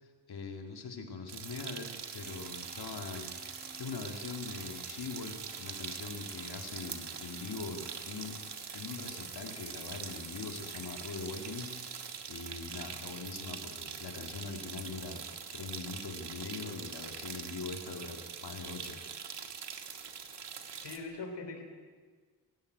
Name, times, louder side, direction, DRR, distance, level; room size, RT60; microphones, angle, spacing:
voice 1, 0.3-8.4 8.7-15.2 15.5-19.3, left 4 dB, 65° left, 4 dB, 2.2 m, -42 dB
sound 1, 1.3-21.0, right 7 dB, 75° right, 1.9 m, -43 dB
sound 2, 2.0-12.6, right 2 dB, 25° right, 3.0 m, -52 dB
voice 2, 20.4-21.6, left 3 dB, 80° left, 4 dB, 3.4 m, -43 dB
23.5 x 14.5 x 9.3 m, 1.5 s
wide cardioid pair, 160°, 41 cm